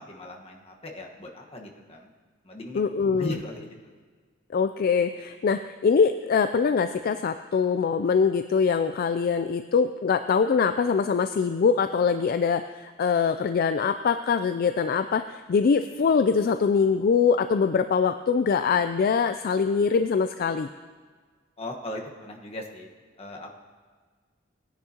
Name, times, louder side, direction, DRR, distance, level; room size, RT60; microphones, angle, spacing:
voice 1, 0.0-2.1 2.4-2.8 3.2-3.9 21.6-22.9 23.2-23.5, left 1 dB, 30° left, 0 dB, 1.3 m, -38 dB
voice 2, 2.7-3.4 4.5-20.7, left 5 dB, 50° left, 9 dB, 0.3 m, -23 dB
19.0 x 10.0 x 2.9 m, 1.5 s
head